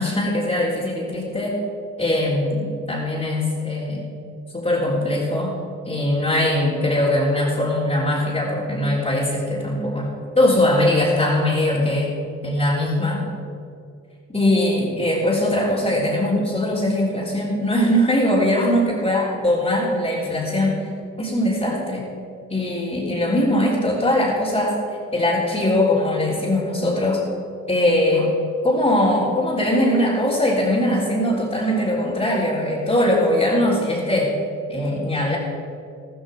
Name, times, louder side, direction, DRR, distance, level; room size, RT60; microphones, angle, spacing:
voice 1, 0.0-1.6 2.0-4.0 4.5-5.6 5.9-10.1 10.4-12.1 12.4-13.3 14.3-20.9 21.2-22.1 22.5-24.8 25.1-27.2 27.7-28.3 28.6-34.3 34.7-35.4, left 1 dB, 20° left, -8 dB, 3.8 m, -21 dB
13.5 x 13.5 x 5.1 m, 2.5 s
supercardioid pair, 65°, 31 cm